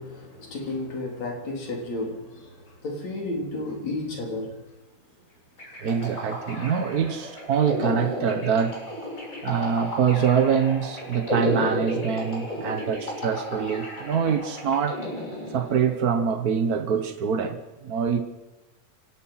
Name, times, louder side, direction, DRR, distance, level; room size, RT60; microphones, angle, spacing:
voice 1, 0.0-2.5 2.8-4.5, left 2 dB, 60° left, 0 dB, 5.0 m, -32 dB
sound 1, 5.6-16.0, equal, 25° left, 7.1 m, -32 dB
voice 2, 5.7-8.8 9.4-15.0 15.5-18.2, right 7 dB, 70° right, 8 dB, 0.8 m, -25 dB
28.5 x 17.5 x 5.8 m, 1.0 s
omnidirectional pair, 3.5 m